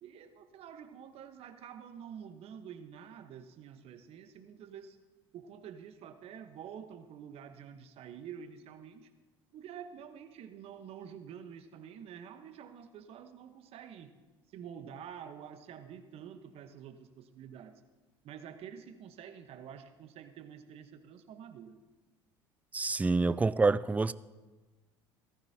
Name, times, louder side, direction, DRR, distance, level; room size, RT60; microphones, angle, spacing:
voice 1, 0.0-5.0 5.3-9.1 9.5-14.1 14.5-17.8 18.2-21.8 23.0-23.4, right 8 dB, 55° right, 1.1 m, -48 dB
voice 2, 22.7-24.1, right 3 dB, 10° right, 0.4 m, -27 dB
18.0 x 14.0 x 2.9 m
hypercardioid pair, 70°, 12 cm